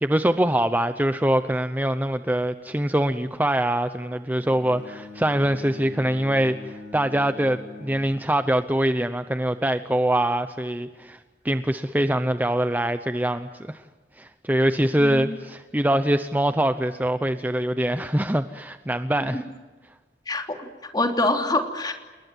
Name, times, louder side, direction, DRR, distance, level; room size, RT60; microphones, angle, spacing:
voice 1, 0.0-11.2 11.4-13.8 14.2-19.4, right 1 dB, 10° right, 9 dB, 0.8 m, -24 dB
Bowed string instrument, 4.4-8.7, left 3 dB, 70° left, 4.1 m, -43 dB
voice 2, 15.0-15.4 19.2-19.4 20.3-21.9, left 2 dB, 25° left, 4 dB, 3.3 m, -26 dB
29.0 x 20.0 x 9.3 m, 1.3 s
head